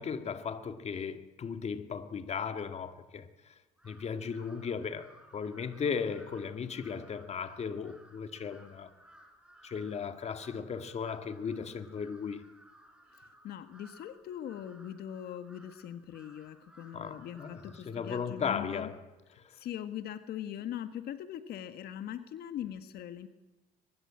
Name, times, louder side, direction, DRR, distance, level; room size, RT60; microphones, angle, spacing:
voice 1, 0.0-3.5 3.8-8.9 9.6-12.5 16.9-19.0, left 6 dB, 40° left, 2.0 m, -36 dB
Crow, 3.8-19.1, right 1 dB, 5° right, 4.9 m, -59 dB
voice 2, 13.1-18.9 19.5-23.3, left 10 dB, 70° left, 1.7 m, -41 dB
23.0 x 21.0 x 8.7 m
cardioid pair, 110°, 17 cm